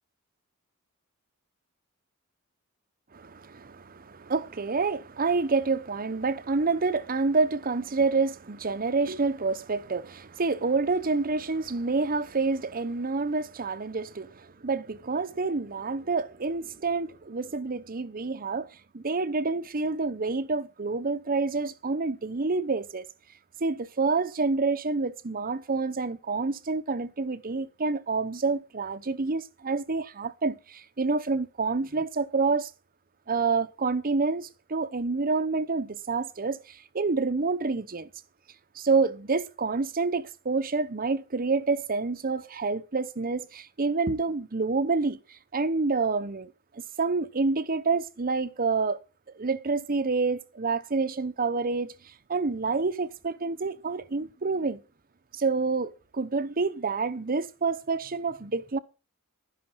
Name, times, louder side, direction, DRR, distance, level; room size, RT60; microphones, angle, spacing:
voice 1, 3.1-18.7 18.9-23.0 23.6-32.7 33.3-38.1 38.7-49.0 49.3-51.9 52.3-54.8 55.3-58.8, right 4 dB, 40° right, 0.9 m, -28 dB
11.5 x 10.0 x 5.7 m
head